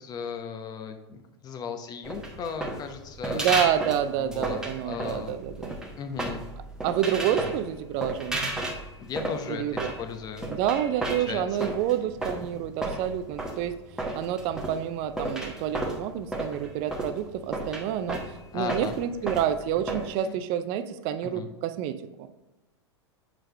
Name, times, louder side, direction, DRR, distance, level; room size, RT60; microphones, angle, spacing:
voice 1, 0.0-3.5 4.2-4.6 4.8-5.4 6.0-6.4 7.1-7.5 9.0-10.5 11.3-11.7 18.5-18.9 20.2-20.4 21.2-21.5, left 6 dB, 25° left, 7 dB, 0.8 m, -36 dB
sound 1, 2.0-20.1, right 1 dB, 5° right, 1.0 m, -34 dB
voice 2, 3.3-5.8 6.8-8.5 9.5-9.9 10.5-13.8 14.1-18.2 18.5-22.4, right 10 dB, 40° right, 11 dB, 0.5 m, -28 dB
7.6 x 4.8 x 3.3 m, 1.0 s
figure-of-eight pair, 95°, 15 cm